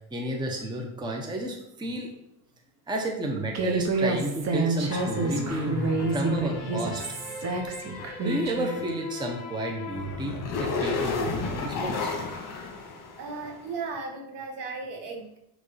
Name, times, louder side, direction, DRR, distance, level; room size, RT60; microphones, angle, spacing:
voice 1, 0.1-2.1 2.9-7.0 8.2-12.1, right 1 dB, 10° right, 1 dB, 0.8 m, -32 dB
Human voice, 3.5-8.8, right 3 dB, 35° right, 0.9 m, -28 dB
sound 1, 4.9-13.6, left 3 dB, 45° left, 1.8 m, -33 dB
voice 2, 13.2-15.4, right 4 dB, 65° right, 1 dB, 1.7 m, -36 dB
6.7 x 3.3 x 5.6 m, 0.81 s
cardioid pair, 135°, 44 cm